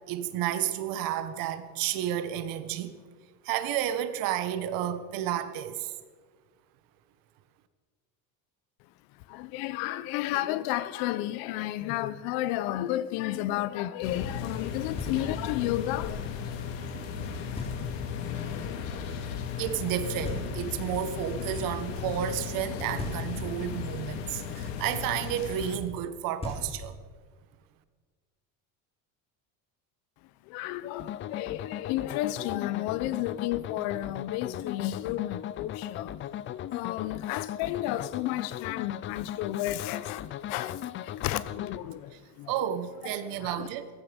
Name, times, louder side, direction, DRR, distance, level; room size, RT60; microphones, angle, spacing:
voice 1, 0.1-3.0 3.4-5.9 19.6-27.0 42.1-42.2 42.5-43.9, right 11 dB, 60° right, 1.5 m, -31 dB
voice 2, 9.3-16.2 30.5-36.2 36.7-42.5 43.0-43.7, left 14 dB, 65° left, 0.9 m, -32 dB
sound 1, 14.0-25.8, left 7 dB, 90° left, 2.2 m, -36 dB
Knock, 15.0-15.6 17.6-18.2 20.2-21.0 23.0-23.7 26.0-26.1 26.4-27.2, left 1 dB, 15° left, 3.8 m, -38 dB
sound 2, 31.0-41.8, left 11 dB, 30° left, 0.5 m, -38 dB
17.0 x 15.0 x 5.3 m
cardioid pair, 140°, 38 cm